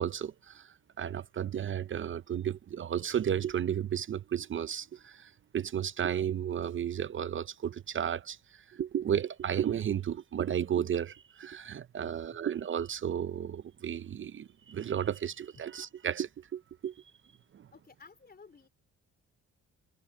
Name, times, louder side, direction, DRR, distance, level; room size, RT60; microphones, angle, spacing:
voice 1, 0.0-16.9 17.5-17.7, right 9 dB, 40° right, 0.6 m, -33 dB
voice 2, 12.0-12.5 15.6-15.7 17.7-18.7, left 5 dB, 30° left, 3.6 m, -55 dB
cardioid pair, 90°, 30 cm